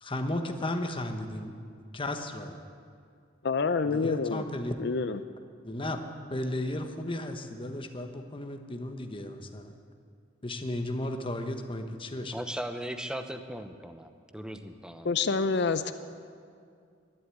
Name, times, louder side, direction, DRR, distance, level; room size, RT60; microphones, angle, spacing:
voice 1, 0.0-1.5 1.9-2.6 3.8-4.7 5.6-6.0 6.3-9.7 10.4-12.5, left 1 dB, 25° left, 6 dB, 1.1 m, -34 dB
voice 2, 3.4-4.4 4.8-5.2 15.0-15.9, left 4 dB, 60° left, 11 dB, 0.6 m, -27 dB
voice 3, 12.3-15.4, equal, 5° right, 8 dB, 0.8 m, -38 dB
12.0 x 11.5 x 9.3 m, 2.3 s
head